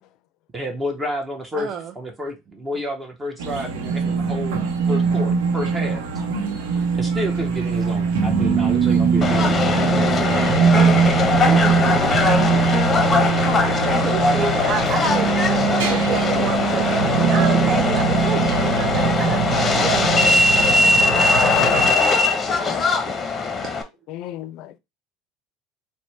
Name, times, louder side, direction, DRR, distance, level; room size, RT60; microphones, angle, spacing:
voice 1, 0.5-6.0 7.0-10.6, equal, 20° right, 0.8 m, -30 dB
voice 2, 1.5-1.9 12.2-12.8 13.9-21.3 21.6-21.7 22.4-22.5 23.6-23.7, right 7 dB, 50° right, 0.4 m, -30 dB
sound 1, 3.4-21.9, right 5 dB, 85° right, 0.7 m, -21 dB
sound 2, 3.5-6.1 8.4-15.1, right 8 dB, 65° right, 1.2 m, -44 dB
Subway metro underground, 9.2-23.8, left 3 dB, 25° left, 0.7 m, -20 dB
voice 3, 21.4-22.2 22.5-22.9 24.1-24.7, left 13 dB, 65° left, 0.4 m, -34 dB
4.1 x 2.1 x 3.2 m
supercardioid pair, 105°, 0 cm